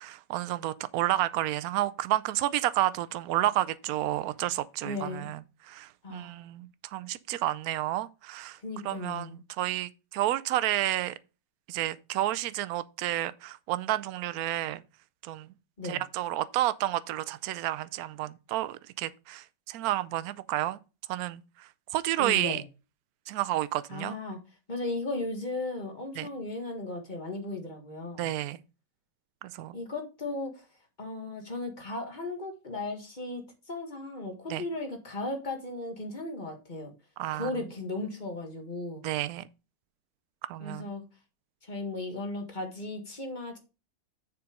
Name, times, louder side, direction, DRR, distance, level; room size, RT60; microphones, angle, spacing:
voice 1, 0.0-5.4 5.7-8.6 8.8-11.1 11.7-14.8 15.2-15.5 15.8-20.8 21.1-22.6 23.3-24.1 26.2-26.3 28.2-28.6 29.4-29.8 34.5-34.6 37.2-37.5 39.0-39.4 40.4-40.9, right 14 dB, 70° right, 0.9 m, -30 dB
voice 2, 4.8-5.3 6.0-6.3 8.6-9.4 15.8-16.0 22.2-22.6 23.9-24.4 24.7-28.3 29.7-30.7 31.0-36.9 37.3-39.1 40.6-41.0 41.6-43.6, left 2 dB, 25° left, 1.6 m, -36 dB
7.1 x 5.2 x 4.9 m
omnidirectional pair, 1.9 m